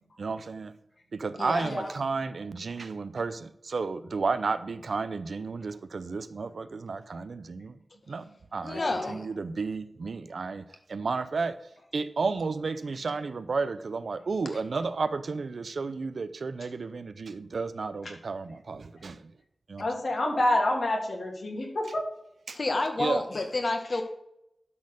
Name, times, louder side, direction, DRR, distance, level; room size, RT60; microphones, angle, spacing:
voice 1, 0.2-0.7 1.1-7.8 8.1-8.8 9.1-11.6 11.9-19.3 19.7-19.9 22.5-22.6 23.0-23.2, right 4 dB, 90° right, 13 dB, 0.6 m, -32 dB
voice 2, 1.4-1.7 8.6-9.3 22.5-24.0, left 2 dB, 55° left, 5 dB, 1.6 m, -30 dB
voice 3, 8.7-9.2 19.8-22.0, left 1 dB, 75° left, -1 dB, 2.9 m, -28 dB
12.0 x 4.4 x 6.5 m, 0.80 s
wide cardioid pair, 95°, 0 cm